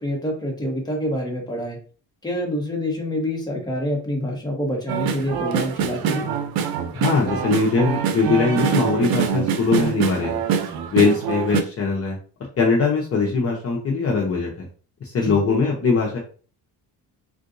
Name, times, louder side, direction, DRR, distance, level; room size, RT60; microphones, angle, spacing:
voice 1, 0.0-1.8 2.2-6.3 15.1-15.4, equal, 10° left, 0 dB, 1.2 m, -26 dB
sound 1, 4.9-11.6, right 8 dB, 70° right, 0.7 m, -24 dB
voice 2, 6.9-10.4 10.9-12.2 12.6-14.7 15.0-16.2, left 4 dB, 40° left, -2 dB, 0.7 m, -21 dB
3.7 x 2.5 x 2.6 m, 0.38 s
cardioid pair, 110°, 37 cm